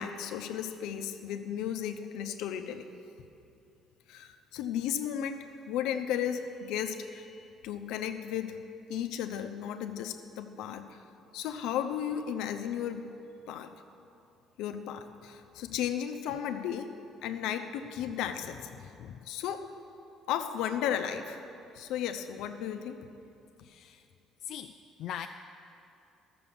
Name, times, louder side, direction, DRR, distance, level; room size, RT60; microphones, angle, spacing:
voice 1, 0.0-2.9 4.1-8.6 8.9-11.0 11.3-13.0 13.5-13.7 14.6-16.9 17.2-18.6 19.3-19.7 20.3-21.5 21.7-23.0, left 9 dB, 85° left, 6 dB, 0.7 m, -34 dB
voice 2, 18.8-19.3 23.6-24.0 24.4-24.7 25.0-25.3, left 10 dB, 60° left, 6 dB, 0.3 m, -41 dB
13.0 x 6.9 x 7.0 m, 2.7 s
cardioid pair, 135°, 0 cm